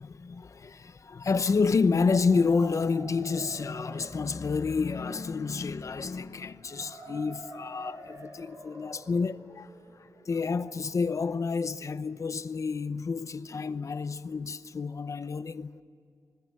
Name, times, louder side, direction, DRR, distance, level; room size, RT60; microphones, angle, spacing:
voice 1, 0.0-15.8, left 4 dB, 55° left, 0.8 m, -29 dB
sound 1, 1.7-11.6, right 1 dB, 65° right, 6.0 m, -49 dB
25.5 x 20.5 x 7.8 m
wide cardioid pair, 110°, 7 cm